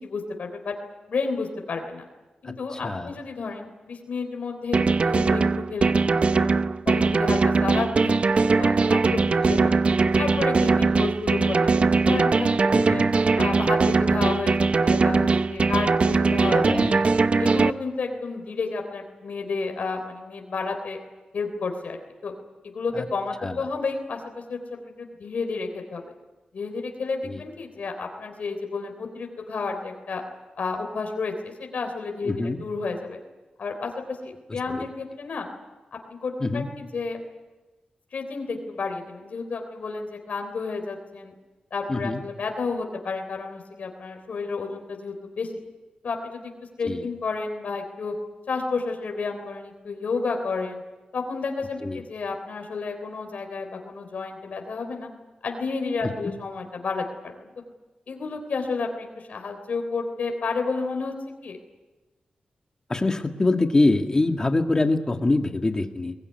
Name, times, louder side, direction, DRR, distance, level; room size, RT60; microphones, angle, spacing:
voice 1, 0.0-0.7 1.1-2.0 2.4-5.4 5.7-6.5 6.9-9.8 10.2-13.0 13.4-16.8 17.4-21.0 21.3-22.0 22.2-22.3 22.7-24.2 24.5-26.0 26.5-30.2 30.6-33.2 33.6-35.5 36.2-37.2 38.1-41.3 41.7-45.5 46.0-46.5 46.8-48.1 48.5-50.8 51.1-55.1 55.4-57.5 58.1-61.1 61.4-61.6, left 4 dB, 70° left, 4 dB, 3.5 m, -31 dB
voice 2, 2.4-3.1 9.5-9.6 12.7-13.1 16.4-17.1 22.9-23.1 23.4-23.7 27.2-27.4 32.2-32.6 34.5-34.9 36.4-36.7 41.9-42.2 46.8-47.1 51.8-52.0 56.2-56.3 62.9-66.1, left 2 dB, 25° left, 5 dB, 1.9 m, -25 dB
sound 1, 4.7-17.7, right 4 dB, 45° right, 0.8 m, -21 dB
22.5 x 19.5 x 9.7 m, 1.2 s
wide cardioid pair, 110°, 3 cm